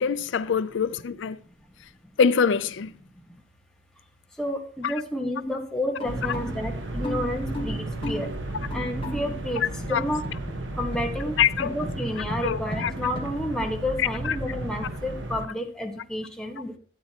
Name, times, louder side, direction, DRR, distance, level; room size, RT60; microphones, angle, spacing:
voice 1, 0.0-1.4 2.2-2.9 4.8-4.9 9.9-10.0 11.4-11.7 12.4-12.9 14.0-14.3, left 6 dB, 65° left, 0.4 m, -24 dB
voice 2, 4.4-8.3 8.7-9.6 9.9-10.2 10.8-16.7, left 1 dB, 5° left, 1.3 m, -30 dB
sound 1, 5.4-13.4, left 1 dB, 30° left, 1.5 m, -37 dB
sound 2, 6.0-15.5, right 1 dB, 65° right, 1.3 m, -34 dB
12.0 x 9.1 x 2.9 m
head